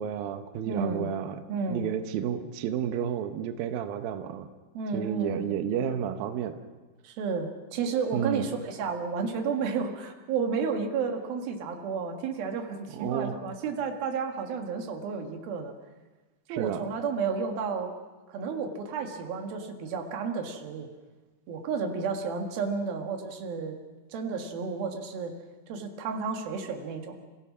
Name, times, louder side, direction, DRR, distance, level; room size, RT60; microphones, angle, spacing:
voice 1, 0.0-1.4 1.7-4.5 4.9-6.6 8.1-8.5 12.9-13.4 16.5-16.9, right 9 dB, 85° right, 8 dB, 2.0 m, -31 dB
voice 2, 0.7-1.1 1.5-1.9 4.7-5.5 7.0-15.7 16.5-18.0 18.3-20.9 21.5-23.8 24.1-25.4 25.7-27.2, right 5 dB, 60° right, 3 dB, 3.1 m, -32 dB
29.0 x 16.5 x 6.1 m, 1.2 s
omnidirectional pair, 5.6 m